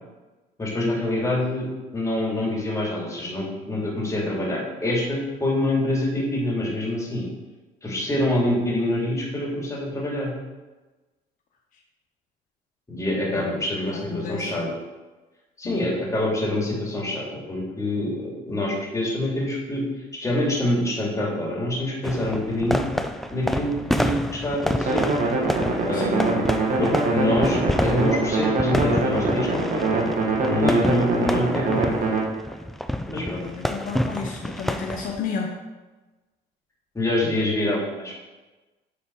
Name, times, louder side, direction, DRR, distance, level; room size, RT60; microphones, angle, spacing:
voice 1, 0.6-7.2 7.8-10.3 12.9-14.8 15.6-19.8 20.2-22.8 23.3-25.1 25.8-26.4 26.8-29.9 30.4-31.9 33.1-33.4 36.9-38.1, left 1 dB, 20° left, -4 dB, 2.6 m, -25 dB
voice 2, 14.1-14.7 15.6-15.9 25.9-26.2 30.8-31.0 33.1-35.5 37.2-37.4, left 5 dB, 55° left, 0 dB, 0.9 m, -32 dB
sound 1, 22.0-35.2, equal, ahead, 0.4 m, -29 dB
sound 2, 24.9-32.2, right 3 dB, 50° right, 1.6 m, -24 dB
8.5 x 4.2 x 4.6 m, 1.2 s
cardioid pair, 110°, 17 cm